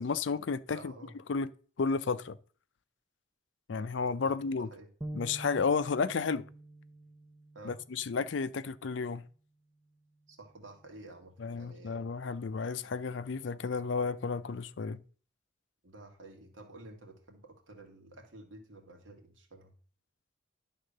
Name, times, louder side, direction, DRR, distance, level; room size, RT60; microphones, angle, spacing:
voice 1, 0.0-0.9 1.3-1.5 1.8-2.4 3.7-4.7 5.1-6.4 7.6-9.2 11.4-15.0, left 5 dB, 70° left, 0.5 m, -32 dB
voice 2, 0.7-1.2 4.2-4.9 7.5-7.8 10.3-12.0 15.8-19.7, right 2 dB, 80° right, 2.1 m, -51 dB
sound 1, 5.0-8.5, right 1 dB, 10° right, 0.6 m, -46 dB
11.0 x 3.7 x 6.5 m
head